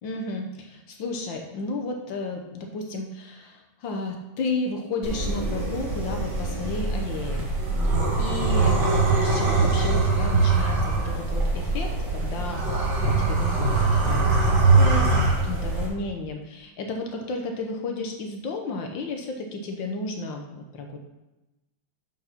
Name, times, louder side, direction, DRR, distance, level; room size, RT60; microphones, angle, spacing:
voice 1, 0.0-7.4 7.7-8.8 9.2-21.0, left 3 dB, 75° left, 2 dB, 1.7 m, -33 dB
sound 1, 5.0-15.9, right 3 dB, 60° right, 2.6 m, -22 dB
7.3 x 6.3 x 5.8 m, 1.0 s
omnidirectional pair, 2.1 m